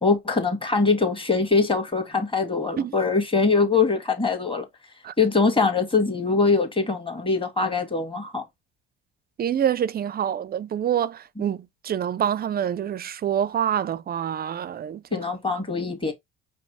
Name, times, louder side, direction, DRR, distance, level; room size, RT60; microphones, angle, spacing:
voice 1, 0.0-4.7 5.2-8.4 15.1-16.1, left 4 dB, 15° left, 1.6 m, -23 dB
voice 2, 9.4-15.2, right 9 dB, 30° right, 0.4 m, -26 dB
5.1 x 2.0 x 4.6 m
hypercardioid pair, 65°, 35 cm